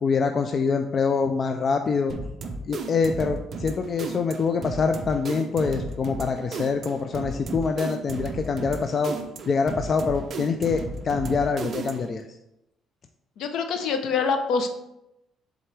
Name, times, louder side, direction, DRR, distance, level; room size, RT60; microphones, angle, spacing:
voice 1, 0.0-2.1 2.7-9.2 9.5-12.2, left 5 dB, 35° left, 6 dB, 0.3 m, -25 dB
sound 1, 2.1-12.2, right 3 dB, 40° right, 0.6 m, -35 dB
voice 2, 13.4-14.7, left 5 dB, 65° left, 6 dB, 0.7 m, -25 dB
7.5 x 3.8 x 3.3 m, 0.87 s
cardioid pair, 140°, 0 cm